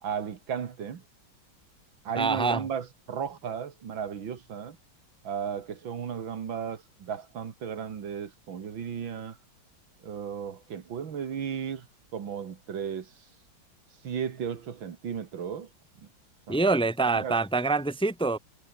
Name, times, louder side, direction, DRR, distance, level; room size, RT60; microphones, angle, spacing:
voice 1, 0.0-1.0 2.0-4.8 5.2-9.4 10.0-11.9 12.1-13.3 14.0-15.7 16.0-16.1 16.5-16.7 17.1-17.4, right 7 dB, 90° right, 2.6 m, -35 dB
voice 2, 2.1-2.7 16.5-18.4, right 3 dB, 5° left, 1.0 m, -25 dB
omnidirectional pair, 2.1 m